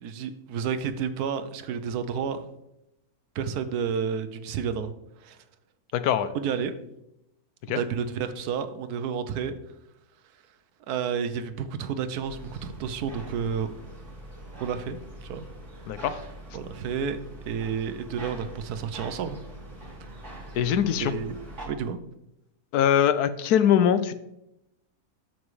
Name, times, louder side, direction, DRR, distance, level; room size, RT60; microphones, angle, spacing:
voice 1, 0.0-2.5 3.3-4.9 5.2-5.4 6.3-6.7 7.7-9.6 10.9-13.7 14.6-15.5 16.5-17.2 17.4-19.4 20.9-21.3 21.6-22.0, right 7 dB, 85° right, 10 dB, 1.2 m, -30 dB
voice 2, 5.9-6.3 7.7-7.8 15.9-16.2 20.5-21.1 22.7-24.1, left 9 dB, 85° left, 13 dB, 1.2 m, -22 dB
sound 1, 12.2-21.7, right 1 dB, 50° right, 2.2 m, -43 dB
12.5 x 6.0 x 3.2 m, 0.85 s
omnidirectional pair, 1.6 m